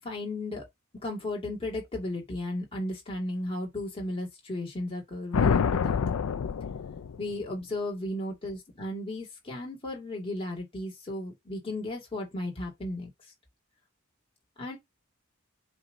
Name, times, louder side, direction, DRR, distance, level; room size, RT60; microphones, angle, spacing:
voice 1, 0.0-0.6 1.0-6.2 7.2-13.1 14.6-14.8, left 1 dB, 25° left, 2.3 m, -35 dB
sound 1, 5.3-7.4, left 6 dB, 80° left, 0.4 m, -27 dB
7.8 x 2.7 x 5.2 m
head